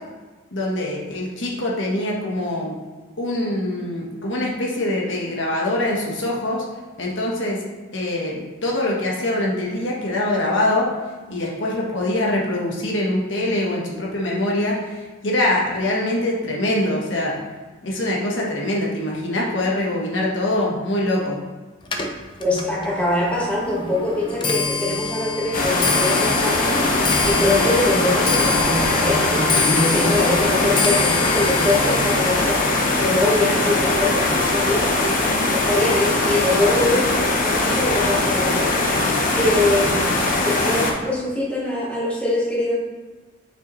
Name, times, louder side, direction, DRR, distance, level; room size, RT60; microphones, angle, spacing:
voice 1, 0.5-2.7 3.2-6.6 7.0-7.6 7.9-10.9 11.3-17.4 17.8-21.4, left 1 dB, 60° left, -3 dB, 1.2 m, -23 dB
Clock, 21.8-35.2 35.5-36.0 36.8-36.9 37.2-37.6 37.8-37.9, left 4 dB, 25° left, 0.5 m, -27 dB
voice 2, 22.4-32.7 33.0-35.1 35.5-38.8 39.3-42.8, left 2 dB, 5° left, -6 dB, 1.3 m, -23 dB
sound 1, 25.5-40.9, left 2 dB, 40° left, 0.9 m, -21 dB
sound 2, 27.2-32.4, right 1 dB, 10° right, 0.7 m, -41 dB
6.7 x 5.6 x 3.1 m, 1.3 s
head